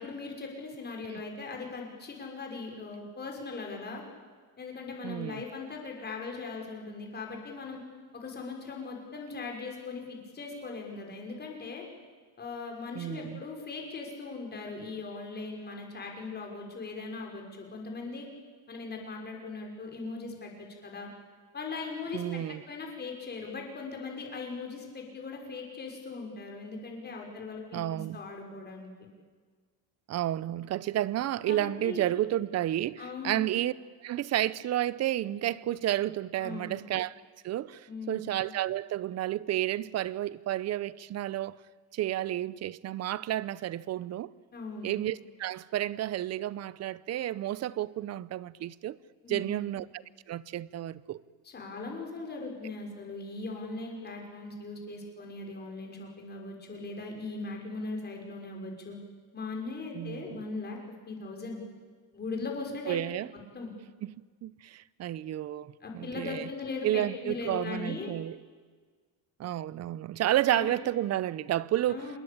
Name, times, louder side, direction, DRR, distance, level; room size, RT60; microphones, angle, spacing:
voice 1, 0.0-4.0 4.6-7.8 8.1-11.8 12.4-18.3 18.7-21.1 21.5-28.9 31.4-32.1 33.0-33.5 36.4-36.8 37.9-38.4 44.5-44.9 49.2-49.7 51.4-59.0 59.3-60.8 61.1-61.6 62.1-63.0 63.3-63.7 65.8-68.1 70.5-70.7 71.9-72.2, left 3 dB, 25° left, 6.0 m, -39 dB
voice 2, 5.0-5.4 12.9-13.4 22.1-22.6 27.7-28.2 30.1-33.7 34.0-37.2 37.4-41.6 41.9-44.3 44.8-49.0 49.3-50.0 50.3-51.2 59.9-60.4 62.9-63.3 64.0-64.2 64.4-66.5 66.8-68.4 69.4-72.1, right 13 dB, 40° right, 0.7 m, -31 dB
27.0 x 21.5 x 8.8 m
cardioid pair, 150°, 41 cm